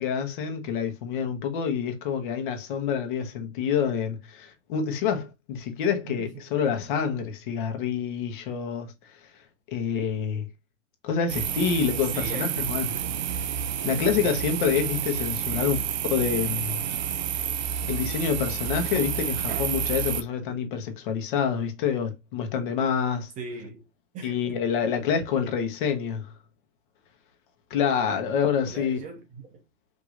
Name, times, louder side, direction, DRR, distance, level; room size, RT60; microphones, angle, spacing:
voice 1, 0.0-8.9 9.7-10.5 11.0-12.9 13.8-15.8 16.1-16.8 17.9-23.3 24.2-26.3 27.7-29.0, left 7 dB, 40° left, 1.2 m, -27 dB
sound 1, 11.3-20.2, right 9 dB, 40° right, 0.4 m, -29 dB
voice 2, 12.1-12.6 15.5-15.9 23.4-23.8 24.1-24.6 25.0-25.1 28.7-29.6, right 3 dB, 20° right, 0.8 m, -40 dB
4.8 x 2.9 x 2.5 m
hypercardioid pair, 135°, 38 cm